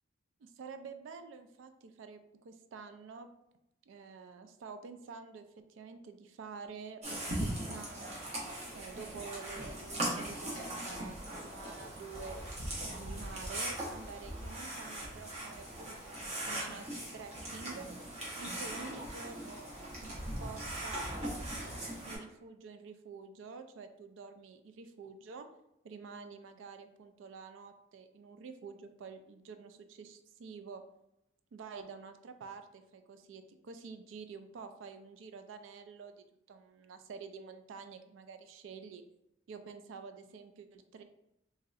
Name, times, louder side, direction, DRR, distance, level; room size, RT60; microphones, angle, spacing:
voice 1, 0.4-3.3 3.9-7.3 7.6-8.2 8.7-12.4 12.9-17.9 18.3-19.7 19.9-25.5 25.8-30.8 31.5-39.0 39.5-41.0, right 5 dB, 75° right, 8 dB, 0.3 m, -49 dB
sound 1, 7.0-22.2, right 1 dB, 35° right, 0.7 m, -40 dB
3.0 x 2.7 x 2.4 m, 0.84 s
head